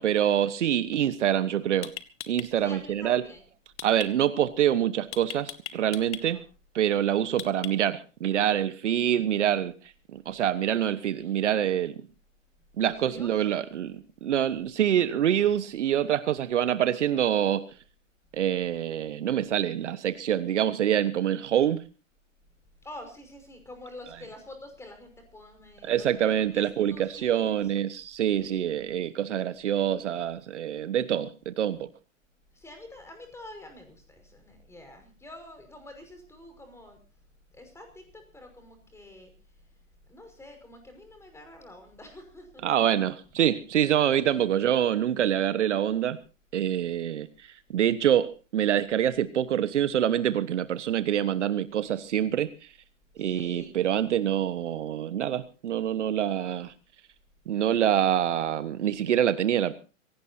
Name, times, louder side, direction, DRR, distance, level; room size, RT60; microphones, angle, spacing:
voice 1, 0.0-1.9 2.3-3.2 3.8-6.4 6.7-9.7 10.1-11.9 12.8-17.6 18.3-21.8 25.8-31.9 42.6-46.2 46.5-47.3 47.7-52.5 53.2-56.7 57.5-59.7, right 10 dB, 65° right, 13 dB, 1.4 m, -26 dB
sound 1, 1.2-1.3 1.8-2.5 3.8-4.1 5.1-6.2 7.4-8.0, left 10 dB, 60° left, 1.9 m, -37 dB
voice 2, 2.6-3.4 6.3-6.4 12.8-13.3 22.8-26.3 26.5-26.7 26.9-27.6 28.4-28.8 32.5-37.0 37.5-39.3 40.1-42.6 44.1-44.3 53.2-53.7, left 1 dB, 5° left, 6 dB, 5.5 m, -47 dB
25.5 x 17.5 x 2.8 m, 0.34 s
hypercardioid pair, 125°, 39 cm